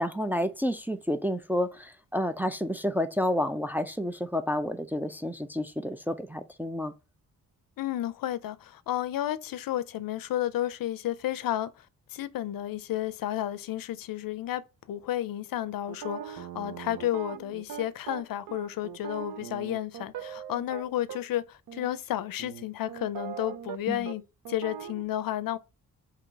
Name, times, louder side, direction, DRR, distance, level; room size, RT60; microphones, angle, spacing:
voice 1, 0.0-6.9 23.9-24.1, left 1 dB, 5° right, 0.3 m, -30 dB
voice 2, 7.8-11.7 12.1-24.2 24.5-25.6, left 12 dB, 80° left, 0.5 m, -32 dB
sound 1, 15.9-21.2 21.7-21.9 22.4-23.8 24.0-24.2 24.4-25.0, right 9 dB, 75° right, 0.6 m, -40 dB
3.8 x 2.8 x 4.5 m
wide cardioid pair, 110°, 34 cm